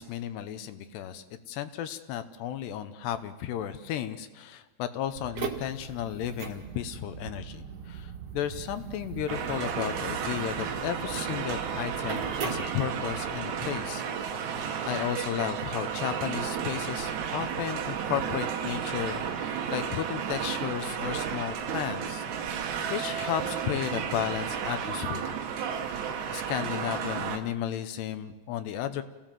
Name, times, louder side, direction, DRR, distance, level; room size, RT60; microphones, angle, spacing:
voice 1, 0.0-14.3 14.9-22.3 22.5-25.4 26.3-29.0, left 10 dB, 75° left, 10 dB, 2.8 m, -34 dB
sound 1, 5.1-13.4, right 5 dB, 50° right, 2.0 m, -40 dB
sound 2, 9.3-27.4, right 7 dB, 75° right, 1.7 m, -33 dB
29.0 x 17.0 x 7.5 m, 1.2 s
omnidirectional pair, 5.4 m